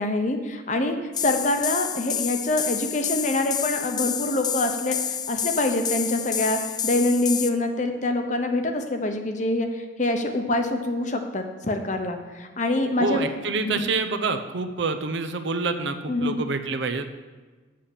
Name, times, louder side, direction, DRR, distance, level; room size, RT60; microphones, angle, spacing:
voice 1, 0.0-5.0 5.3-13.3 13.6-13.9 16.1-16.4, left 2 dB, 40° left, 5 dB, 0.9 m, -25 dB
sound 1, 1.1-7.5, left 8 dB, 20° left, 0.3 m, -29 dB
voice 2, 13.0-17.0, right 3 dB, 70° right, 7 dB, 0.7 m, -27 dB
7.5 x 6.7 x 7.2 m, 1.3 s
head